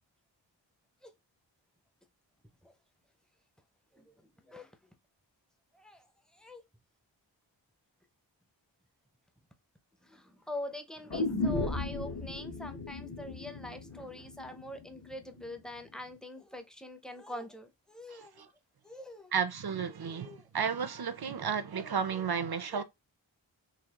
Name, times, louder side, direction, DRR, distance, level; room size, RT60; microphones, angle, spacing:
voice 1, 3.9-4.7 5.7-6.1 6.3-6.6 10.0-18.4 18.8-19.3 20.0-20.5 22.1-22.3 22.7-22.8, left 1 dB, ahead, 0.7 m, -44 dB
sound 1, 11.1-15.1 15.4-15.5, left 2 dB, 50° left, 1.1 m, -35 dB
voice 2, 18.1-18.5 19.3-22.8, right 7 dB, 55° right, 0.6 m, -33 dB
4.1 x 2.8 x 2.9 m
wide cardioid pair, 55°, 46 cm